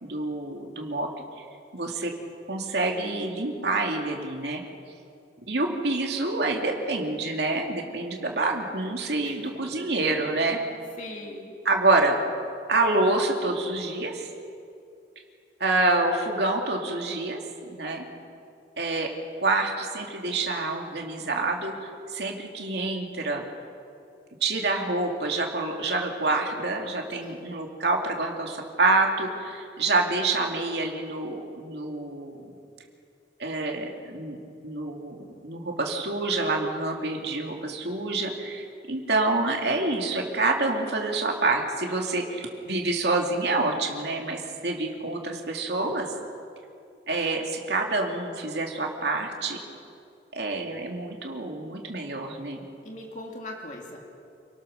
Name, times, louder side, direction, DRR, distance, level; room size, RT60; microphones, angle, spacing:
voice 1, 0.0-1.1 1.7-2.1 2.5-4.6 5.5-10.6 11.6-12.1 12.7-14.3 15.6-17.4 17.7-18.0 18.8-19.1 19.4-23.4 24.4-32.5 33.4-34.4 34.6-46.1 47.1-49.6 50.3-52.6, right 2 dB, 70° right, 1 dB, 2.5 m, -27 dB
voice 2, 11.0-11.5 27.2-27.4 52.8-54.1, left 1 dB, 45° left, 0 dB, 2.6 m, -40 dB
28.5 x 17.5 x 6.6 m, 2.6 s
head